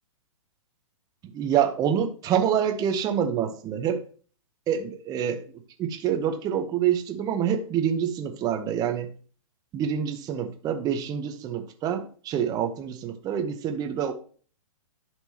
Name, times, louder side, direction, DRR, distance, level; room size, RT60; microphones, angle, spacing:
voice 1, 1.3-4.0 4.7-5.4 5.8-9.1 9.7-14.1, right 8 dB, 20° right, 5 dB, 0.8 m, -26 dB
11.5 x 4.5 x 2.8 m, 0.41 s
hypercardioid pair, 130°, 18 cm